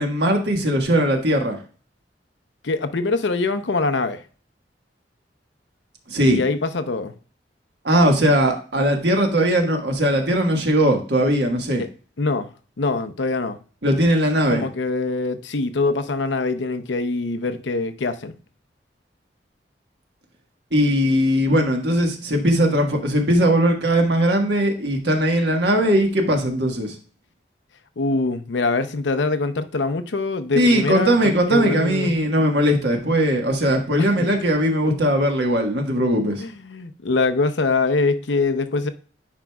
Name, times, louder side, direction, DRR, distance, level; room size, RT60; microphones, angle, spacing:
voice 1, 0.0-1.6 6.1-6.4 7.8-11.8 13.8-14.6 20.7-26.9 30.5-36.4, equal, 65° right, 1.5 m, -19 dB
voice 2, 2.6-4.2 6.3-7.1 11.8-11.9 12.2-12.5 12.8-13.6 14.5-18.3 28.0-32.2 34.0-34.1 36.4-38.9, left 3 dB, 80° left, 0.7 m, -23 dB
10.0 x 4.8 x 2.3 m
head